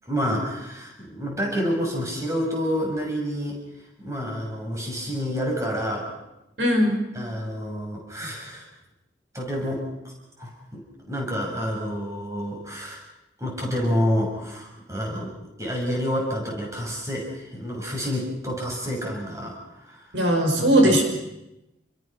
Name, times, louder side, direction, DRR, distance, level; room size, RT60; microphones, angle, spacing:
voice 1, 0.0-3.6 4.0-6.1 7.1-8.6 9.3-9.8 10.4-13.0 13.4-20.0 20.6-21.0, equal, 15° right, -1 dB, 6.9 m, -29 dB
voice 2, 6.6-7.1 20.1-21.0, right 1 dB, 80° right, 3 dB, 6.3 m, -19 dB
29.5 x 23.0 x 6.1 m, 0.93 s
head